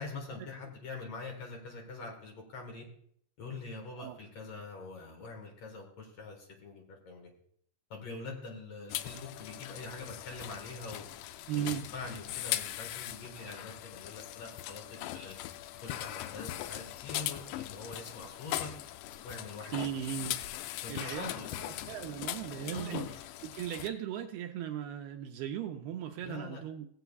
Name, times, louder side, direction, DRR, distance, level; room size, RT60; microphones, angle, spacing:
voice 1, 0.0-2.8 3.4-7.3 7.9-11.1 11.6-15.4 15.8-18.7 19.2-19.8 20.8-21.7 22.7-23.1 26.2-26.6, left 3 dB, 55° left, 1 dB, 1.9 m, -44 dB
sound 1, 8.9-23.9, left 14 dB, 85° left, 2.6 m, -40 dB
voice 2, 11.5-11.9 19.7-20.4 20.9-21.3 21.6-23.0 23.4-26.9, right 10 dB, 80° right, 3 dB, 2.2 m, -37 dB
19.0 x 7.9 x 2.3 m, 0.63 s
omnidirectional pair, 5.0 m